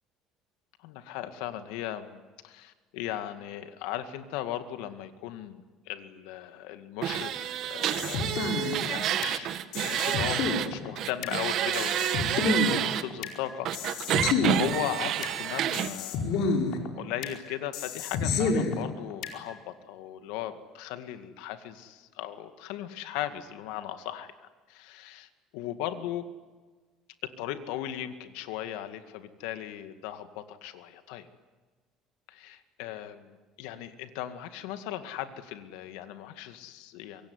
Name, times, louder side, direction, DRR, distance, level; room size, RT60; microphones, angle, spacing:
voice 1, 0.8-8.5 8.8-9.5 9.8-16.5 17.0-26.3 27.2-31.3 32.3-37.3, left 12 dB, 90° left, 9 dB, 2.0 m, -38 dB
sound 1, 7.0-10.7 11.0-13.0 13.7-15.9, right 11 dB, 55° right, 1.7 m, -29 dB
sound 2, 7.8-9.4 9.7-11.4 11.7-13.4 13.7-15.4 15.7-17.4 17.7-19.4, left 4 dB, 65° left, 4.7 m, -29 dB
25.0 x 23.0 x 9.8 m, 1.4 s
cardioid pair, 130°, 0 cm